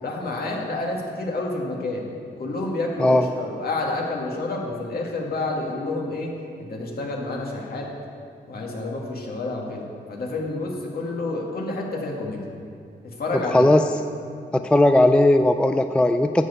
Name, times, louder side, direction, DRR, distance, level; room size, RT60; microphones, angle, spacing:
voice 1, 0.0-2.1 2.4-6.3 6.7-7.9 8.5-12.4 13.2-13.7, left 2 dB, 60° left, -1 dB, 1.9 m, -29 dB
voice 2, 13.5-13.8 14.5-16.5, left 1 dB, 5° left, 8 dB, 0.3 m, -17 dB
11.0 x 5.5 x 8.3 m, 2.3 s
wide cardioid pair, 115°, 18 cm